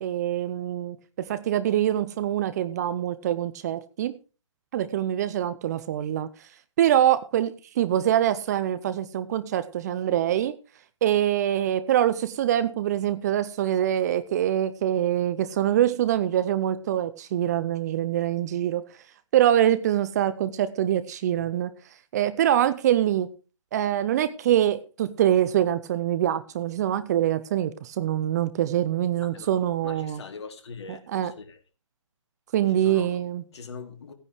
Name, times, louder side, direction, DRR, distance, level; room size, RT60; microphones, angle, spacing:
voice 1, 0.0-4.2 4.7-6.3 6.8-10.5 11.0-18.8 19.3-21.7 22.1-23.3 23.7-30.2 30.9-31.3 32.5-33.4, right 11 dB, 30° right, 0.7 m, -24 dB
voice 2, 29.8-31.6 32.7-33.2 33.5-34.1, left 5 dB, 50° left, 2.6 m, -42 dB
16.5 x 10.0 x 3.1 m
figure-of-eight pair, 140°, 17 cm